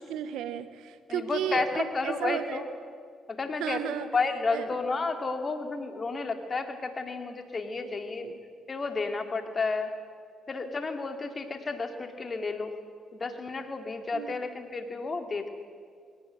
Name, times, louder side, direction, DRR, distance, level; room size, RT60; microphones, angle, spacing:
voice 1, 0.0-2.7 3.5-4.1 4.5-4.8 7.8-7.9 8.2-8.4 14.1-14.4, right 9 dB, 85° right, 12 dB, 1.3 m, -34 dB
voice 2, 1.1-2.7 3.3-3.8 4.1-8.3 8.7-9.9 10.5-12.7 13.1-15.5, left 4 dB, 40° left, 6 dB, 2.9 m, -31 dB
22.0 x 18.0 x 9.4 m, 2.1 s
supercardioid pair, 65°, 0 cm